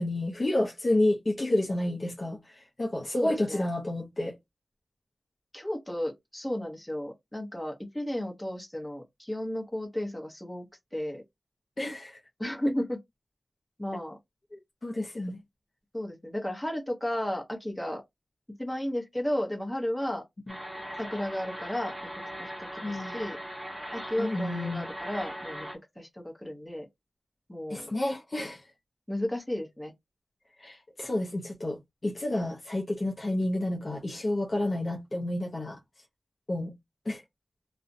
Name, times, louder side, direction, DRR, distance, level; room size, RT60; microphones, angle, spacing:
voice 1, 0.0-4.3 11.8-12.2 14.5-15.4 20.5-20.6 22.8-23.2 24.2-24.9 27.7-28.6 30.6-35.8 36.5-36.7 37.1-37.2, left 1 dB, 40° left, 0.5 m, -30 dB
voice 2, 3.2-3.7 5.5-10.7 10.9-11.2 12.4-13.0 13.8-14.2 15.9-18.0 18.6-20.2 21.0-21.9 22.4-23.4 23.9-25.7 26.0-26.9 27.5-27.9 29.1-29.9, left 1 dB, 15° left, 0.8 m, -33 dB
sound 1, 20.5-25.8, equal, 15° right, 1.0 m, -39 dB
2.4 x 2.0 x 2.6 m
wide cardioid pair, 75°, 0 cm